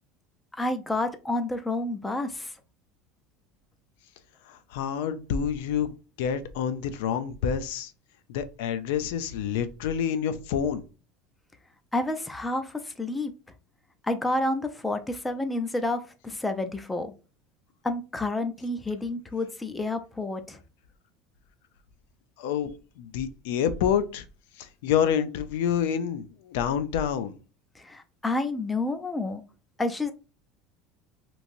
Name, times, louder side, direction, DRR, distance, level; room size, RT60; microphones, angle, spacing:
voice 1, 0.6-2.5 11.9-13.3 14.1-17.1 17.8-20.6 27.8-29.4 29.8-30.1, left 2 dB, 10° left, 0.3 m, -29 dB
voice 2, 4.5-5.9 6.2-7.9 8.3-10.8 22.4-22.7 23.0-24.2 24.6-27.3, left 8 dB, 80° left, 0.4 m, -28 dB
3.0 x 2.6 x 2.5 m
cardioid pair, 160°, 0 cm